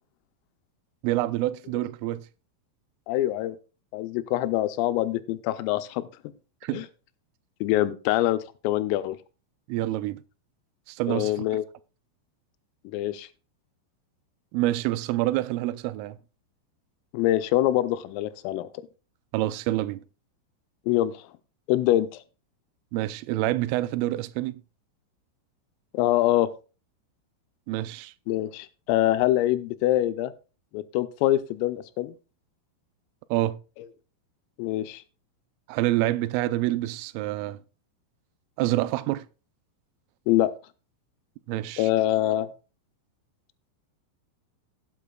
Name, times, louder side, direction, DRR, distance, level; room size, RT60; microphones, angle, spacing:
voice 1, 1.0-2.2 6.6-6.9 9.7-10.2 10.9-11.3 14.5-16.2 19.3-20.0 22.9-24.6 27.7-28.1 33.3-33.6 35.7-37.6 38.6-39.3 41.5-41.9, right 16 dB, 85° right, 3.0 m, -27 dB
voice 2, 3.1-3.6 3.9-6.1 6.7-6.9 7.6-9.2 11.1-11.6 12.9-13.3 17.1-18.7 20.9-21.2 21.7-22.2 25.9-26.5 28.3-30.3 30.7-32.1 34.6-35.0 40.3-40.5 41.8-42.5, left 14 dB, 85° left, 3.2 m, -24 dB
17.5 x 8.6 x 2.3 m
omnidirectional pair, 5.9 m